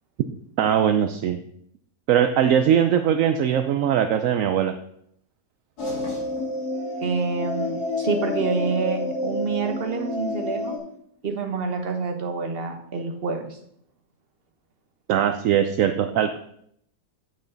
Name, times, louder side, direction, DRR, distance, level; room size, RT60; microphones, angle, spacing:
voice 1, 0.6-1.4 2.1-4.7 15.1-16.4, right 9 dB, 70° right, 8 dB, 0.8 m, -20 dB
sound 1, 5.8-10.8, left 2 dB, 65° left, 3.0 m, -29 dB
voice 2, 7.0-10.8 11.2-13.6, right 5 dB, 40° right, 4 dB, 1.3 m, -27 dB
8.9 x 8.4 x 3.9 m, 0.70 s
omnidirectional pair, 1.8 m